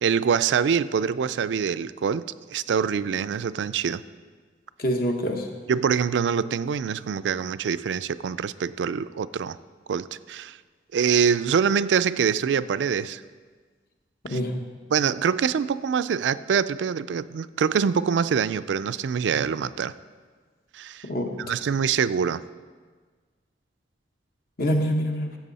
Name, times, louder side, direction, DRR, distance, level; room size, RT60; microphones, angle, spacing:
voice 1, 0.0-2.2 2.5-4.0 5.7-9.6 9.9-10.6 10.9-13.2 14.3-14.4 14.9-19.9 20.7-21.1 21.4-22.4, right 7 dB, 80° right, 15 dB, 0.3 m, -24 dB
voice 2, 4.8-5.5 14.2-14.6 21.0-21.4 24.6-25.3, equal, 55° left, 3 dB, 1.2 m, -25 dB
14.5 x 8.1 x 4.1 m, 1.5 s
head